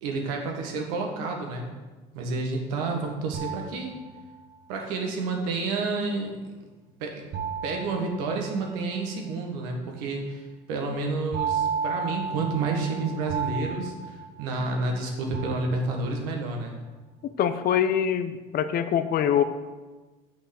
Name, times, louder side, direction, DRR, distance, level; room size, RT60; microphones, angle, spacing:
voice 1, 0.0-1.7 2.1-4.0 4.7-6.3 7.0-7.3 7.6-16.8, right 3 dB, 80° right, 2 dB, 1.5 m, -30 dB
sound 1, 3.3-4.5 7.3-9.0 11.3-14.9 15.3-16.3, right 6 dB, 60° right, 1.1 m, -33 dB
voice 2, 17.4-19.4, left 9 dB, 55° left, 11 dB, 0.7 m, -24 dB
7.1 x 5.7 x 6.4 m, 1.2 s
hypercardioid pair, 65°, 19 cm